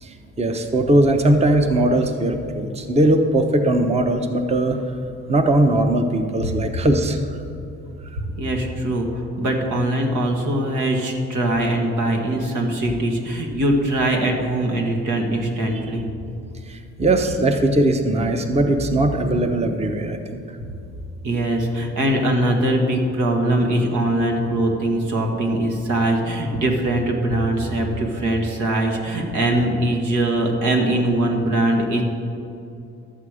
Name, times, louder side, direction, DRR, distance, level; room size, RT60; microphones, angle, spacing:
voice 1, 0.0-4.8 5.3-7.4 15.7-15.8 16.7-20.4, right 1 dB, 20° right, 6 dB, 0.8 m, -19 dB
voice 2, 8.2-16.1 21.2-32.0, right 1 dB, 80° right, 2 dB, 1.7 m, -22 dB
12.0 x 8.3 x 4.9 m, 2.6 s
cardioid pair, 90°, 30 cm